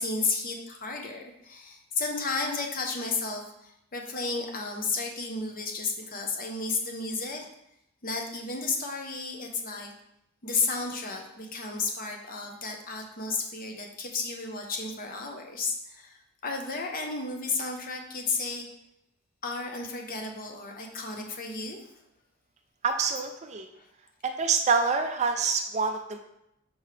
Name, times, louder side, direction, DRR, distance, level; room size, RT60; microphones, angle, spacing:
voice 1, 0.0-7.5 8.0-9.9 10.4-18.7 19.4-21.8 23.7-23.9, left 4 dB, 40° left, 2 dB, 0.8 m, -33 dB
voice 2, 22.8-23.7 24.2-26.2, right 5 dB, 30° right, 6 dB, 0.4 m, -26 dB
6.6 x 4.4 x 3.3 m, 0.80 s
head